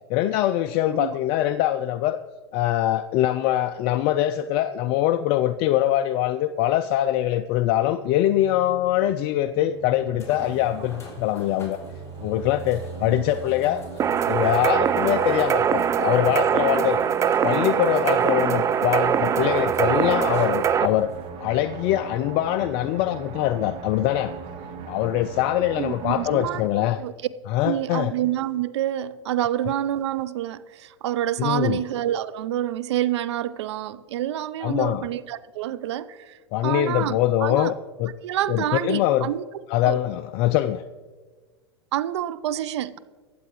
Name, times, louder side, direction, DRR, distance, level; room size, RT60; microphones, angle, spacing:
voice 1, 0.1-2.2 2.5-11.8 12.2-13.8 14.3-17.0 17.4-21.1 21.4-24.3 24.9-27.0 27.5-28.1 31.4-31.8 34.6-35.0 36.5-37.7 38.0-38.1 38.5-39.3 39.7-40.8, left 13 dB, 45° left, 0.4 m, -23 dB
sound 1, 7.7-26.7, right 6 dB, 35° right, 1.2 m, -39 dB
sound 2, 10.2-21.2 22.0-22.1 25.5-25.6, left 2 dB, 20° left, 3.5 m, -48 dB
sound 3, 14.0-20.9, right 8 dB, 20° right, 0.4 m, -22 dB
voice 2, 25.8-27.1 27.6-37.7 38.2-39.4 39.8-40.0 41.9-43.0, right 12 dB, 75° right, 0.5 m, -28 dB
21.5 x 7.7 x 3.1 m
hypercardioid pair, 110°, 15 cm